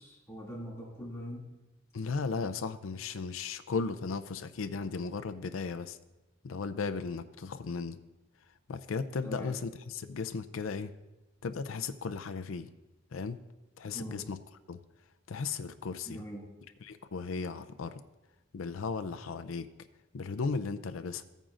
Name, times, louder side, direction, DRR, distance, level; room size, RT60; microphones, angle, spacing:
voice 1, 0.0-1.5 9.2-9.6 13.9-14.2 16.0-16.5, equal, 15° left, -4 dB, 2.4 m, -42 dB
voice 2, 1.9-6.0 6.4-8.0 8.7-10.9 11.4-12.7 13.1-13.4 13.8-14.4 14.7-14.8 15.3-16.2 16.8-18.0 18.5-19.7 20.1-21.2, left 4 dB, 90° left, 9 dB, 0.5 m, -36 dB
14.5 x 8.9 x 2.5 m, 1.0 s
head